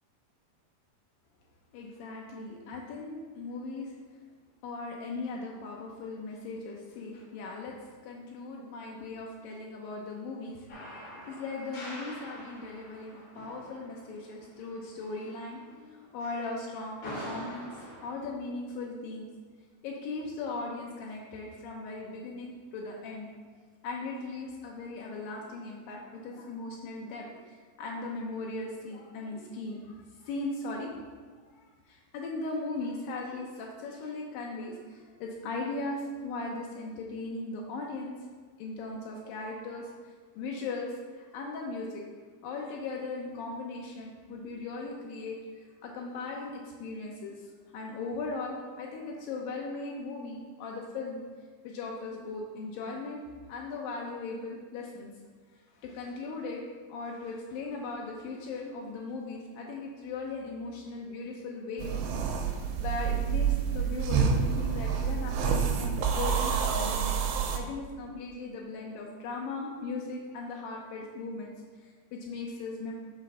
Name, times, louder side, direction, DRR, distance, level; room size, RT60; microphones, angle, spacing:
voice 1, 1.7-4.0 4.6-7.7 8.0-19.3 19.8-23.3 23.8-30.9 31.5-38.2 38.6-42.0 42.4-47.5 47.7-51.2 51.6-53.2 53.5-55.1 55.8-56.6 56.9-62.0 62.5-67.2 67.5-71.5 71.8-72.9, left 3 dB, 90° left, -1 dB, 2.0 m, -38 dB
sound 1, 10.7-15.7 16.2-18.1, equal, 50° left, 1.5 m, -45 dB
sound 2, 61.8-67.6, right 6 dB, 85° right, 2.8 m, -28 dB
6.1 x 5.0 x 5.5 m, 1.6 s
omnidirectional pair, 4.9 m